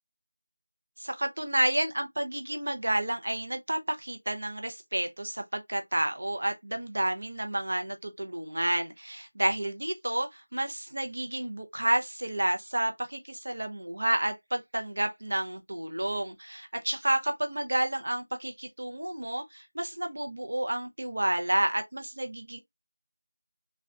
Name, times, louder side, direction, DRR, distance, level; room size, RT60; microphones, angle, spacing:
voice 1, 1.0-22.6, right 1 dB, 60° right, 0.6 m, -30 dB
3.5 x 2.2 x 2.3 m
figure-of-eight pair, 175°, 0 cm